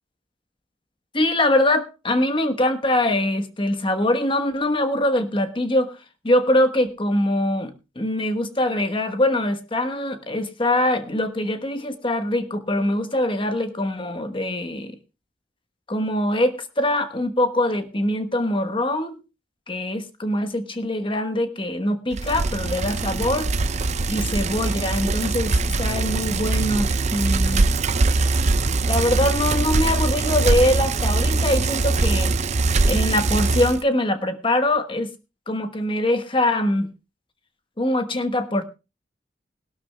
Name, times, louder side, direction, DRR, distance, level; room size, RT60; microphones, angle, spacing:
voice 1, 1.1-6.0 6.2-15.0 15.9-19.2 19.7-23.5 24.1-27.7 28.8-32.4 32.9-35.1 35.5-36.9 37.8-38.6, left 1 dB, 30° left, 8 dB, 1.2 m, -23 dB
Bicycle, 22.1-33.8, right 3 dB, 40° right, 0.6 m, -22 dB
20.0 x 12.0 x 2.3 m, 0.28 s
head